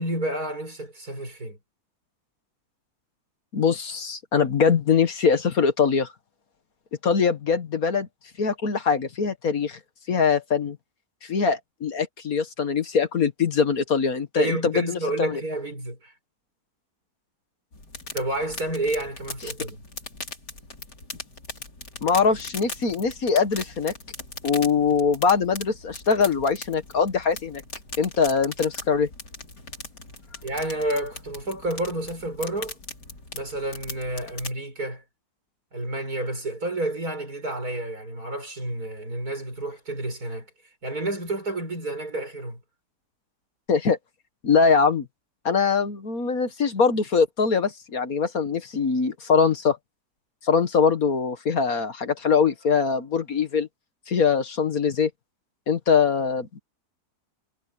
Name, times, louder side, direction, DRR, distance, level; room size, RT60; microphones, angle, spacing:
voice 1, 0.0-1.6 14.4-16.1 18.1-19.8 30.4-32.8 33.3-35.0 35.7-40.5 40.8-42.6, right 1 dB, 60° right, 7.7 m, -30 dB
voice 2, 3.5-6.1 7.0-8.1 8.4-9.8 10.1-10.8 11.2-15.4 22.0-23.9 24.4-27.6 28.0-29.1 43.7-44.0 44.4-45.1 45.5-49.8 50.4-53.7 54.1-55.1 55.7-56.6, left 6 dB, 60° left, 1.9 m, -22 dB
sound 1, 17.7-34.5, left 3 dB, 90° left, 5.0 m, -40 dB
omnidirectional pair, 1.7 m